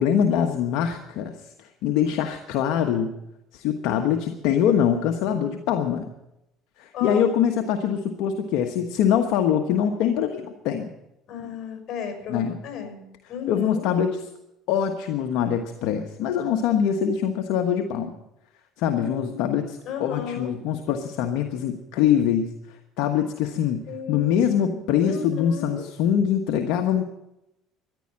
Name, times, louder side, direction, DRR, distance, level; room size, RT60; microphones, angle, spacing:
voice 1, 0.0-3.1 3.5-6.1 6.8-10.9 12.3-12.6 13.5-14.2 14.7-18.2 18.8-23.8 24.1-27.0, left 8 dB, 75° left, 5 dB, 1.2 m, -24 dB
voice 2, 6.9-7.3 11.3-13.9 18.9-20.5 23.9-25.8, left 7 dB, 50° left, 5 dB, 6.1 m, -34 dB
14.5 x 10.5 x 8.8 m, 0.89 s
supercardioid pair, 100°, 0 cm